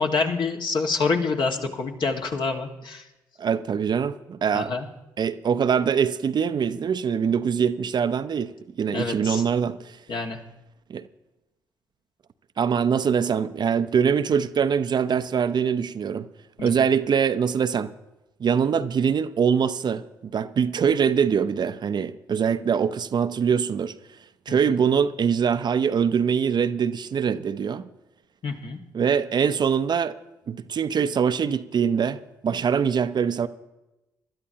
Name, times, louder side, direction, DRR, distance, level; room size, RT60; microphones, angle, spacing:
voice 1, 0.0-3.0 4.5-4.9 8.9-9.4 10.1-10.4 16.6-16.9 24.5-24.6 28.4-28.8, left 4 dB, 50° left, 1.7 m, -27 dB
voice 2, 3.4-4.7 5.2-8.5 8.8-9.8 10.9-11.0 12.6-16.3 16.6-17.9 18.4-20.0 20.3-23.9 24.5-27.8 28.9-30.1 30.5-33.5, right 7 dB, 45° right, 0.6 m, -23 dB
25.0 x 12.5 x 2.9 m
hypercardioid pair, 45°, 10 cm